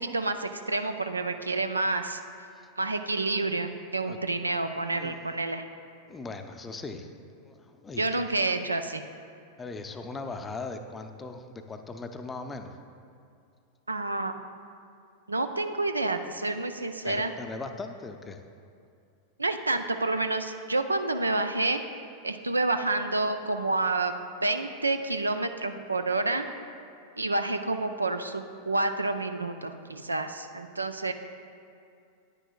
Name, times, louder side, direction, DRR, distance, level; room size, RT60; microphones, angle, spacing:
voice 1, 0.0-2.2 2.8-5.7 8.0-9.0 13.9-14.3 15.3-17.3 19.4-21.8 22.2-24.1 24.4-26.5 27.2-31.1, right 2 dB, 80° right, 8 dB, 0.4 m, -29 dB
voice 2, 4.9-5.5 6.1-8.2 9.6-12.8 17.0-18.4, left 3 dB, 15° left, 6 dB, 0.5 m, -39 dB
9.8 x 9.7 x 2.3 m, 2.5 s
figure-of-eight pair, 90°, 0 cm